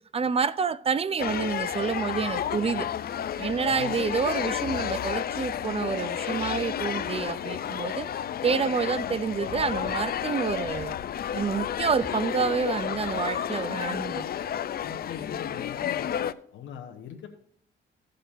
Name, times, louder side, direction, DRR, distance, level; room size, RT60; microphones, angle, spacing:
voice 1, 0.1-2.9 3.4-8.1 8.4-11.0 11.3-14.3, right 6 dB, 30° right, 0.5 m, -28 dB
sound 1, 1.2-16.3, left 9 dB, 50° left, 0.5 m, -31 dB
voice 2, 13.4-14.5 14.8-16.1 16.5-17.3, left 8 dB, 75° left, 1.2 m, -42 dB
16.5 x 6.6 x 2.6 m
cardioid pair, 90°, 20 cm